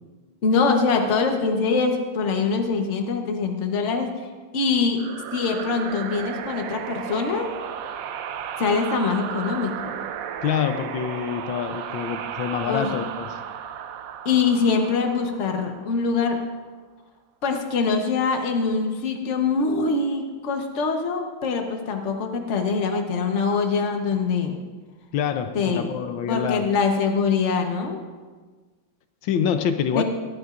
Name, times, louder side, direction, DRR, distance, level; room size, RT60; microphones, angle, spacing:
voice 1, 0.4-4.1 4.5-5.0 5.3-7.5 8.6-10.0 12.7-12.9 14.2-16.4 17.4-24.6 25.5-25.9 26.3-28.0 29.9-30.0, left 4 dB, 45° left, 4 dB, 1.2 m, -23 dB
sound 1, 5.0-16.3, right 9 dB, 80° right, 0.8 m, -34 dB
voice 2, 10.4-13.4 25.1-26.6 29.2-30.0, left 8 dB, 80° left, 8 dB, 1.5 m, -26 dB
18.0 x 12.0 x 2.5 m, 1.4 s
omnidirectional pair, 2.1 m